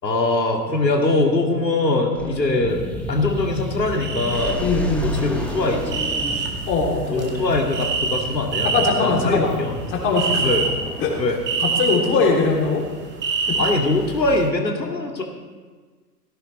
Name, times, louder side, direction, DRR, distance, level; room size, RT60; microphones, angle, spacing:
voice 1, 0.0-2.8 3.1-4.6 5.0-6.1 7.1-8.7 9.0-9.7 10.4-10.7 11.2-11.4 13.6-15.2, left 2 dB, 80° left, 1 dB, 2.4 m, -22 dB
sound 1, 2.1-11.7, equal, 5° left, 1.1 m, -32 dB
sound 2, 4.0-4.5 4.8-14.5, right 4 dB, 20° right, 2.0 m, -27 dB
voice 2, 4.6-5.1 6.7-7.5 8.7-9.5 9.9-10.5 11.0-11.1 11.6-12.8 13.5-13.6, left 4 dB, 25° left, -1 dB, 3.2 m, -21 dB
18.0 x 16.0 x 3.3 m, 1.4 s
figure-of-eight pair, 110°, 50 cm